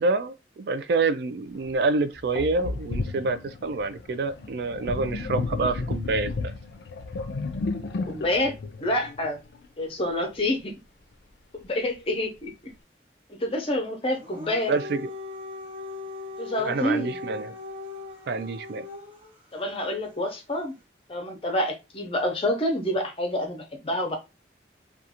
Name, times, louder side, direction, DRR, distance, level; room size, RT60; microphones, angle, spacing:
voice 1, 0.0-6.3 14.7-15.1 16.7-17.5 18.3-18.8, right 3 dB, 65° right, 0.3 m, -27 dB
Sink (filling or washing), 1.7-1.8 2.4-9.7, left 3 dB, 80° left, 0.4 m, -33 dB
voice 2, 8.1-8.5 8.8-9.4 9.8-10.7 11.5-12.5 13.3-14.7 16.4-17.2 19.5-20.7 21.1-24.2, left 1 dB, 30° left, 0.6 m, -27 dB
Dog, 14.1-19.3, left 3 dB, 30° right, 0.7 m, -39 dB
2.4 x 2.3 x 2.8 m
head